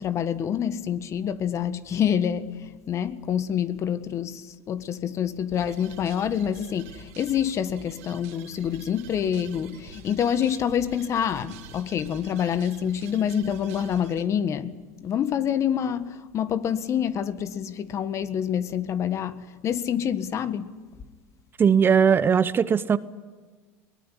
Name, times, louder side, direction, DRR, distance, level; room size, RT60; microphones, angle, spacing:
voice 1, 0.0-20.7, left 9 dB, 45° left, 1.6 m, -27 dB
sound 1, 5.5-14.2, right 5 dB, 80° right, 3.0 m, -47 dB
voice 2, 21.6-23.0, right 7 dB, 30° right, 0.9 m, -19 dB
22.0 x 19.0 x 9.9 m
supercardioid pair, 95°, 7 cm